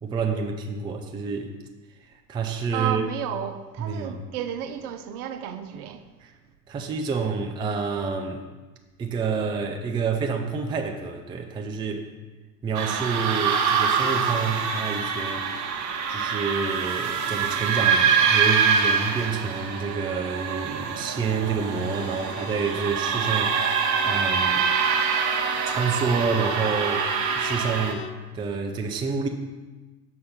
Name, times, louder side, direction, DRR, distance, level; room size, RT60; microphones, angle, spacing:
voice 1, 0.0-1.5 2.3-3.1 3.8-4.2 6.2-6.3 6.7-8.4 9.0-12.1 12.6-15.7 16.1-24.7 25.6-28.1 28.3-29.3, right 5 dB, 10° right, 0.4 m, -28 dB
voice 2, 2.7-6.0, right 9 dB, 65° right, 0.7 m, -32 dB
sound 1, 12.7-27.9, right 6 dB, 35° right, 0.9 m, -25 dB
Bowed string instrument, 21.6-28.3, left 7 dB, 65° left, 0.6 m, -41 dB
6.6 x 4.3 x 5.7 m
hypercardioid pair, 80°, 49 cm